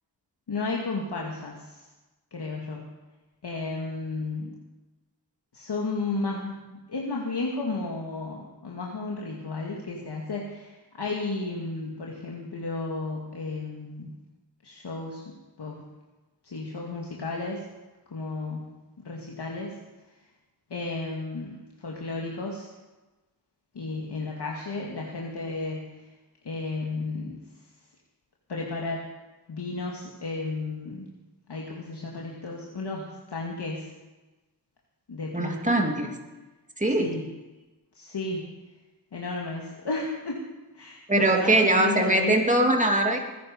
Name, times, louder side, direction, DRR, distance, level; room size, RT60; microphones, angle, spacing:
voice 1, 0.5-1.7 2.3-2.9 3.4-4.5 5.5-6.6 6.9-14.1 14.6-15.8 16.4-17.6 18.1-18.7 19.0-19.8 20.7-22.7 23.7-25.9 26.5-27.4 28.5-29.1 29.5-31.1 31.5-33.9 35.1-36.0 37.0-37.3 38.0-38.5 39.1-40.4 40.7-42.3, left 3 dB, 65° left, -2 dB, 2.1 m, -33 dB
voice 2, 35.3-36.1 36.8-37.1 41.1-43.2, right 1 dB, 15° right, 2 dB, 2.8 m, -22 dB
20.0 x 10.5 x 5.2 m, 1.1 s
cardioid pair, 50°, 44 cm